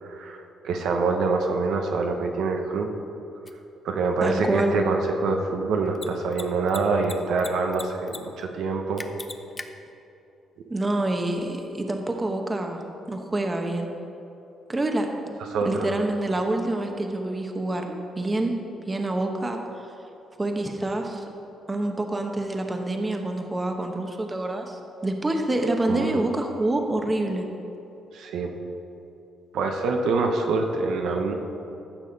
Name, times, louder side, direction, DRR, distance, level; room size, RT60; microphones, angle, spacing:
voice 1, 0.0-2.9 3.8-9.0 15.5-16.0 25.9-26.1 28.1-28.5 29.5-31.3, right 3 dB, 80° right, 3 dB, 0.9 m, -25 dB
Mechanisms, 3.4-3.5 5.9-6.1 6.3-6.4 6.7-7.5 7.7-8.2 8.4-8.5 9.0-9.6, left 3 dB, 25° left, 0.6 m, -37 dB
voice 2, 4.2-4.7 10.7-12.8 13.1-13.9 14.7-15.3 15.6-18.5 18.9-19.9 20.4-21.2 21.7-27.5, right 2 dB, 20° right, 3 dB, 1.0 m, -27 dB
14.5 x 6.5 x 4.0 m, 2.8 s
cardioid pair, 90°, 0 cm